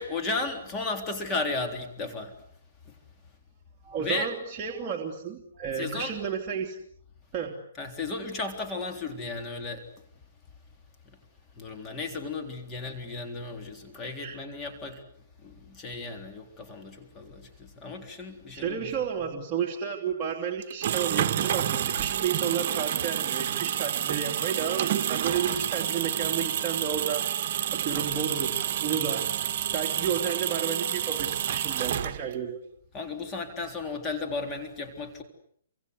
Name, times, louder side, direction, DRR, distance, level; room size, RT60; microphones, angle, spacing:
voice 1, 0.0-2.3 2.9-3.0 4.0-4.3 5.8-6.2 7.8-9.8 11.6-15.0 15.4-18.9 32.9-35.2, left 3 dB, 15° left, 3 dB, 3.7 m, -34 dB
voice 2, 3.8-6.8 7.3-7.6 14.2-14.4 18.5-27.3 27.7-29.3 29.7-32.6, right 7 dB, 20° right, -1 dB, 3.2 m, -32 dB
sound 1, 20.6-32.5, right 10 dB, 45° right, 1.6 m, -29 dB
28.0 x 25.5 x 8.2 m, 0.67 s
hypercardioid pair, 155°, 0 cm